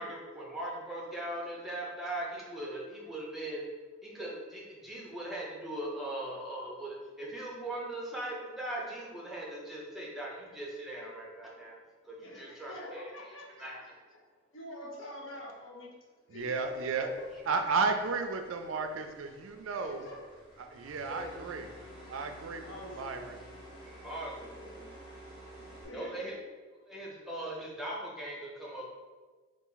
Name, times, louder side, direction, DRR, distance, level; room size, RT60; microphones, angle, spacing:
voice 1, 0.0-3.7 4.0-11.8 12.0-13.1 13.6-13.8 23.8-24.9 25.8-26.3 26.9-28.9, right 1 dB, ahead, -4 dB, 0.7 m, -40 dB
voice 2, 12.2-14.2 14.5-17.3 19.7-20.3 21.0-21.4 22.6-23.1 25.6-26.4, left 2 dB, 65° left, 0 dB, 0.7 m, -46 dB
voice 3, 16.3-17.1 17.5-20.0 20.7-21.7 22.1-22.7 23.0-23.3, right 4 dB, 70° right, 6 dB, 0.4 m, -33 dB
sound 1, 16.4-25.8, right 1 dB, 25° left, 1.4 m, -52 dB
4.0 x 2.5 x 3.9 m, 1.4 s
head